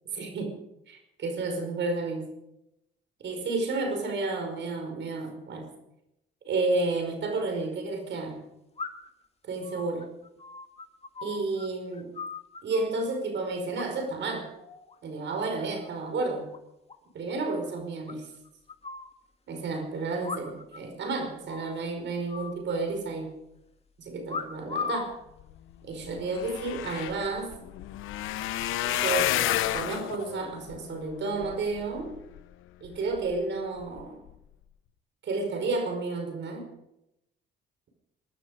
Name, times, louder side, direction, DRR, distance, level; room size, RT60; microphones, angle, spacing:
voice 1, 0.1-0.6 0.9-2.3 3.2-5.7 6.5-8.4 9.5-10.1 11.2-12.1 12.6-14.5 15.0-16.5 17.1-18.3 19.5-23.3 24.0-25.1 25.8-27.5 28.8-29.4 29.7-32.1 32.8-34.2 35.2-36.7, right 3 dB, 65° right, 4 dB, 5.2 m, -31 dB
sound 1, 7.0-7.1 8.8-9.2 9.6-11.7 11.9-13.0 13.7-14.3 14.6-14.9 15.3-15.9 16.2-16.3 16.5-16.6 16.9-17.0 17.3-17.4 18.1-19.1 20.2-20.8 21.1-21.2 21.5-21.8 22.3-23.2 24.3-25.1 25.9-26.3, left 5 dB, 30° left, 2.2 m, -38 dB
sound 2, 25.7-25.8 26.0-32.4 32.9-33.4 33.8-34.0 34.3-34.4, left 13 dB, 90° left, 0.9 m, -31 dB
22.5 x 12.5 x 5.1 m, 0.86 s
cardioid pair, 90°, 20 cm